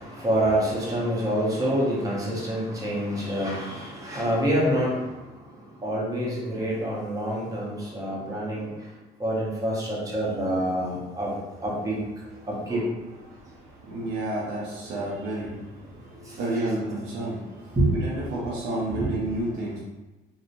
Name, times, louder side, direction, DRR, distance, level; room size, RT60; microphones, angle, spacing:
voice 1, 0.0-5.2 5.8-8.7 9.2-11.3 11.6-12.0 12.5-12.9 16.3-16.4 17.8-17.9 19.0-19.3, right 1 dB, 20° right, -5 dB, 0.8 m, -26 dB
voice 2, 11.1-11.7 12.3-19.8, right 1 dB, 80° right, -5 dB, 0.6 m, -32 dB
2.9 x 2.1 x 2.5 m, 1.1 s
cardioid pair, 110°, 17 cm